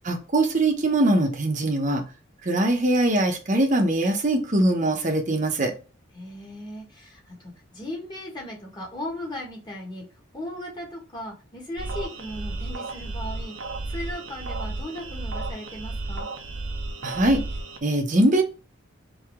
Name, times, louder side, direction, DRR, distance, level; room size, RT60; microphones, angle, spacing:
voice 1, 0.0-2.0 2.4-5.7 17.0-17.4 17.8-18.4, right 1 dB, 40° right, 0.9 m, -22 dB
voice 2, 6.1-10.1 10.3-13.5 13.9-16.3, left 1 dB, 20° left, 1.6 m, -37 dB
sound 1, 11.8-17.8, right 2 dB, 80° right, 0.8 m, -33 dB
4.7 x 2.9 x 3.5 m
head